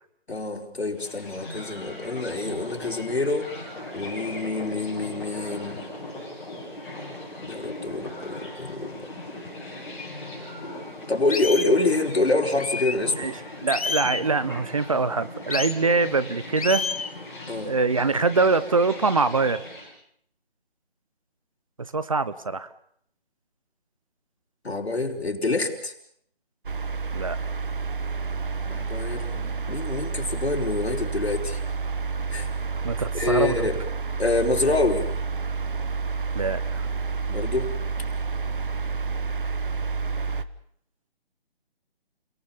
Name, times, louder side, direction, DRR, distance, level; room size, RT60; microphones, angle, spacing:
voice 1, 0.3-3.5 3.9-5.8 7.4-9.1 11.1-13.3 17.5-17.7 24.6-25.9 28.6-31.6 32.3-32.5 33.1-33.8 34.2-35.1 37.3-37.7, left 2 dB, 85° left, 1 dB, 4.8 m, -26 dB
sound 1, 0.9-19.9, left 1 dB, 5° left, 7.2 m, -39 dB
sound 2, 10.0-10.1 10.6-10.7 11.3-11.7 12.6-13.0 13.7-14.3 15.5-15.8 16.6-17.1, left 5 dB, 35° left, 1.0 m, -29 dB
voice 2, 13.2-16.9 17.6-19.6 21.8-22.7 27.1-27.4 32.8-33.7 36.3-36.9, right 4 dB, 35° right, 14 dB, 0.9 m, -24 dB
sound 3, 26.7-40.4, right 4 dB, 55° right, 1.2 m, -29 dB
30.0 x 18.5 x 7.1 m, 0.68 s
figure-of-eight pair, 170°, 31 cm